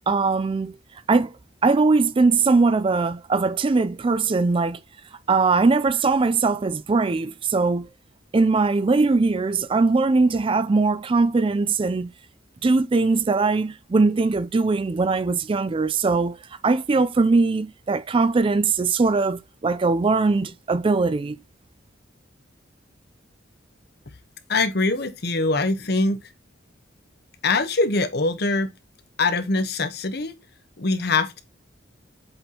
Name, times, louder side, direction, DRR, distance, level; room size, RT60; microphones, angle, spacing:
voice 1, 0.1-0.7 1.1-1.3 1.6-4.8 5.3-7.9 8.3-12.1 12.6-16.4 16.6-21.4, right 3 dB, 30° right, 0.4 m, -21 dB
voice 2, 24.5-26.2 27.4-28.7 29.2-30.4 30.8-31.4, left 3 dB, 60° left, 1.0 m, -23 dB
7.8 x 4.3 x 2.8 m
head